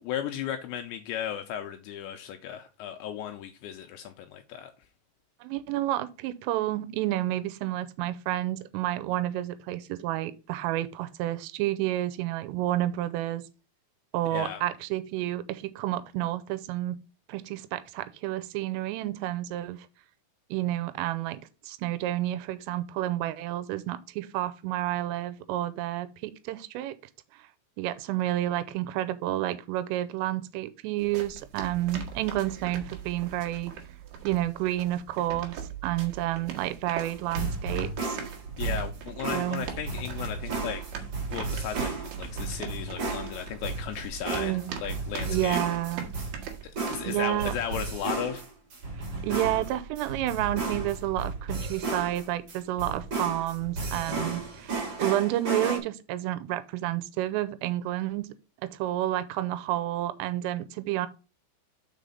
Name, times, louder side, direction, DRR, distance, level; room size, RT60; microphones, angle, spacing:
voice 1, 0.0-4.7 14.3-14.6 38.6-40.8 41.3-44.5 44.8-45.6 46.6-48.4, left 10 dB, 90° left, 2.5 m, -35 dB
voice 2, 5.4-13.5 14.1-17.0 17.3-19.9 20.5-27.0 27.8-33.7 34.2-38.2 39.3-39.7 44.3-44.8 45.3-46.1 47.0-47.5 49.2-58.3 58.6-61.1, right 14 dB, 90° right, 3.2 m, -30 dB
sound 1, 31.0-47.8, right 7 dB, 65° right, 2.7 m, -41 dB
sound 2, 37.0-55.8, right 3 dB, 40° right, 2.4 m, -34 dB
6.4 x 5.0 x 5.3 m
omnidirectional pair, 5.8 m